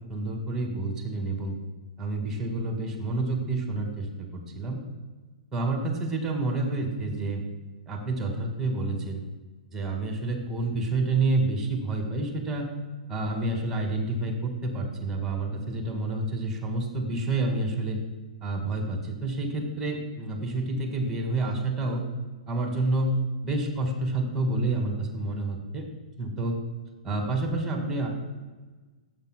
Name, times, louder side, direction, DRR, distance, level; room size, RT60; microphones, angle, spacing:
voice 1, 0.1-1.6 2.0-4.8 5.5-7.4 7.9-9.2 9.7-12.7 13.1-18.0 18.4-22.0 22.5-23.2 23.4-25.9 26.2-26.6 27.0-28.1, right 2 dB, 10° right, 1 dB, 1.9 m, -29 dB
12.0 x 7.5 x 2.2 m, 1.3 s
hypercardioid pair, 125°, 4 cm